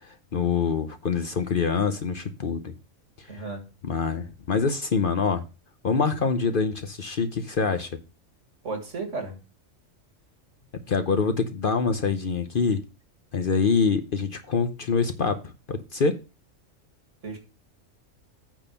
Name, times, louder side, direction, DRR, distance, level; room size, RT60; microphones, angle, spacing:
voice 1, 0.3-2.7 3.3-3.4 3.8-5.4 5.8-7.9 10.9-12.8 13.3-15.4 15.7-16.2, left 5 dB, 50° left, 0.8 m, -25 dB
voice 2, 3.3-3.6 8.6-9.4 17.2-17.4, right 3 dB, 65° right, 2.4 m, -33 dB
8.9 x 4.2 x 6.9 m
omnidirectional pair, 1.3 m